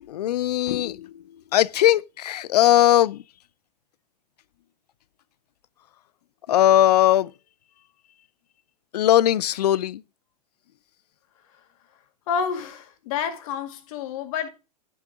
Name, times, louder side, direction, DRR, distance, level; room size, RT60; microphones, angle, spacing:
voice 1, 0.0-3.2 6.5-7.3 8.9-10.0, left 12 dB, 70° left, 0.5 m, -20 dB
voice 2, 12.3-14.5, left 7 dB, 55° left, 2.1 m, -29 dB
10.5 x 6.3 x 3.7 m
hypercardioid pair, 110°, 21 cm